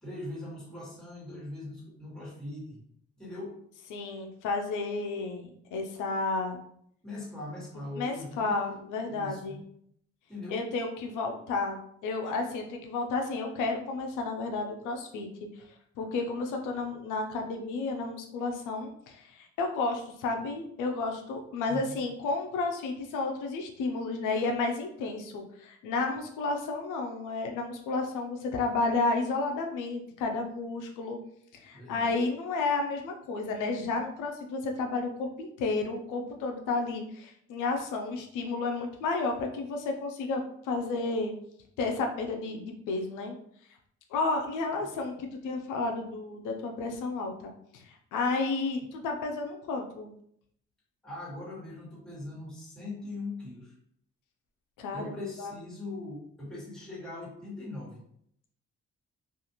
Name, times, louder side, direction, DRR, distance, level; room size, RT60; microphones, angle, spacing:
voice 1, 0.0-2.8 3.2-3.6 7.0-8.7 9.1-9.6 10.3-10.6 21.6-21.9 31.7-32.1 51.0-53.7 54.9-58.0, left 2 dB, ahead, -7 dB, 1.5 m, -41 dB
voice 2, 3.9-6.6 8.0-9.6 10.5-15.3 16.0-31.2 31.6-41.3 41.8-43.4 44.1-47.8 48.1-50.1 54.8-55.5, left 3 dB, 90° left, 3 dB, 0.5 m, -32 dB
2.4 x 2.4 x 2.9 m, 0.68 s
cardioid pair, 90°, 30 cm